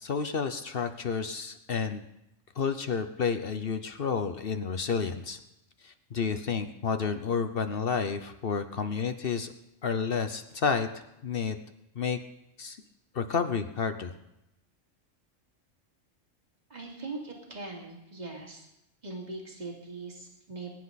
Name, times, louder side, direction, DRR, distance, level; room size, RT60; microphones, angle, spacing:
voice 1, 0.0-2.0 2.6-5.4 5.8-9.5 9.8-11.6 11.9-12.2 12.6-12.8 13.1-14.1, left 5 dB, 50° left, 8 dB, 0.9 m, -30 dB
voice 2, 16.7-18.7 19.0-20.7, right 3 dB, 35° right, -1 dB, 2.8 m, -41 dB
22.0 x 10.5 x 4.1 m, 0.86 s
omnidirectional pair, 1.3 m